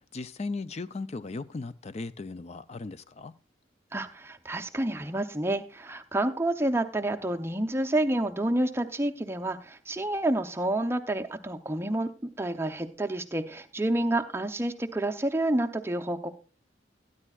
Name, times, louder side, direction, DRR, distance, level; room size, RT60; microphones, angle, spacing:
voice 1, 0.1-3.3, left 3 dB, 35° left, 0.4 m, -37 dB
voice 2, 3.9-16.3, right 1 dB, 15° right, 0.6 m, -29 dB
17.0 x 9.9 x 2.4 m
head